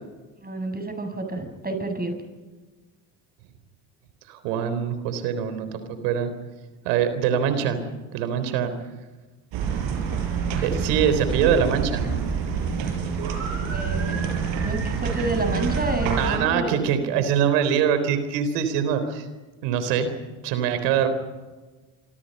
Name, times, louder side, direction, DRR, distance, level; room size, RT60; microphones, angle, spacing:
voice 1, 0.4-2.1 13.6-14.3 14.6-17.2, right 2 dB, 20° right, 6 dB, 7.2 m, -29 dB
voice 2, 4.3-6.3 6.8-7.8 8.1-8.7 10.6-12.2 16.2-19.3 19.6-20.1 20.4-21.1, right 8 dB, 85° right, 10 dB, 4.0 m, -23 dB
sound 1, 9.5-16.4, right 6 dB, 70° right, 6.4 m, -27 dB
26.5 x 25.5 x 5.5 m, 1.3 s
supercardioid pair, 75°, 47 cm